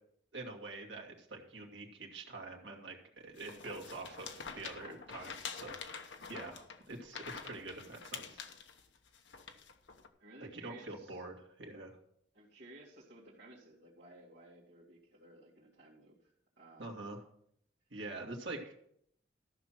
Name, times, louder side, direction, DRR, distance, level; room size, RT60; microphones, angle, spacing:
voice 1, 0.3-5.8 6.1-8.4 10.4-11.9 16.8-17.2 17.9-18.7, right 2 dB, 85° right, 1 dB, 2.3 m, -46 dB
sound 1, 3.4-10.1, left 6 dB, 85° left, 1.0 m, -47 dB
voice 2, 10.2-11.2 12.3-17.0, right 1 dB, 65° right, -9 dB, 2.6 m, -57 dB
14.0 x 6.2 x 5.9 m, 0.70 s
head